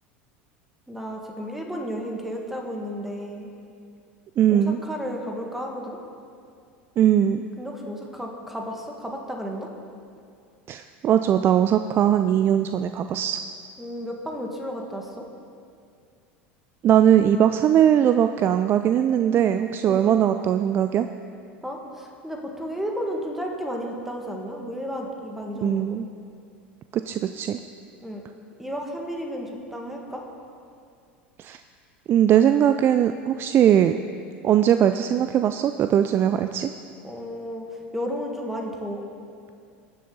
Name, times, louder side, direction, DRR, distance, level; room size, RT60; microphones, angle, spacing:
voice 1, 0.9-3.5 4.5-6.0 7.6-9.7 13.8-15.2 19.8-20.2 21.6-26.0 28.0-28.2 28.6-30.2 37.0-39.0, equal, 5° right, 0 dB, 2.0 m, -33 dB
voice 2, 4.4-4.8 7.0-7.4 10.7-13.4 16.8-21.1 25.6-26.1 26.9-27.6 31.4-31.6 32.1-33.9 34.4-36.7, right 10 dB, 40° right, 9 dB, 0.4 m, -20 dB
19.0 x 6.8 x 4.0 m, 2.3 s
hypercardioid pair, 85°, 6 cm